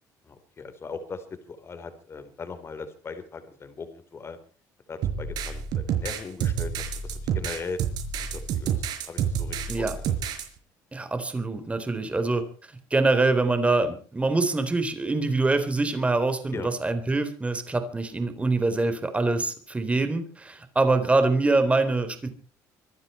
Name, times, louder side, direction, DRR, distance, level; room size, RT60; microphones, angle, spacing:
voice 1, 0.2-4.4 4.9-7.8 8.2-10.2 16.5-16.7, left 4 dB, 35° left, 10 dB, 4.0 m, -39 dB
sound 1, 5.0-10.5, right 8 dB, 70° right, 5.1 m, -29 dB
voice 2, 10.9-12.4 12.9-22.3, right 3 dB, 15° right, 9 dB, 4.0 m, -24 dB
25.0 x 12.0 x 4.5 m, 0.41 s
cardioid pair, 100°, 7 cm